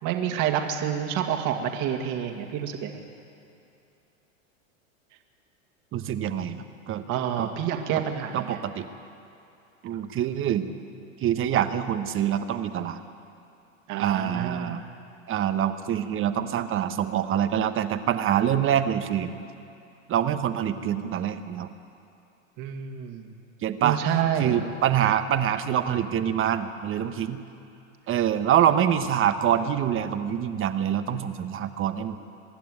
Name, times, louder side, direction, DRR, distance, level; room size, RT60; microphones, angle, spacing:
voice 1, 0.0-3.0 7.1-8.6 13.9-14.8 22.6-23.3 23.8-24.6, right 9 dB, 50° right, 4 dB, 2.3 m, -28 dB
voice 2, 5.9-7.1 7.4-7.5 8.3-8.9 9.8-10.7 11.2-13.0 14.0-14.8 15.3-19.3 20.1-21.7 23.6-24.0 24.4-27.4 28.1-32.2, right 10 dB, 30° right, 9 dB, 1.2 m, -25 dB
25.0 x 11.5 x 9.8 m, 2.7 s
hypercardioid pair, 110°, 40 cm